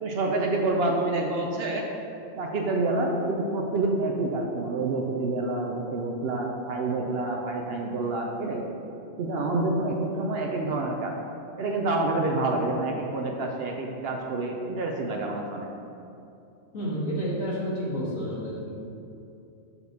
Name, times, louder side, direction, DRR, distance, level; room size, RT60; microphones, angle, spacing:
voice 1, 0.0-1.9 2.4-8.6 9.2-11.1 11.6-15.7, right 2 dB, 60° right, 1 dB, 0.7 m, -28 dB
voice 2, 16.7-18.7, equal, 75° left, -7 dB, 2.0 m, -30 dB
6.9 x 6.1 x 2.8 m, 2.7 s
omnidirectional pair, 1.3 m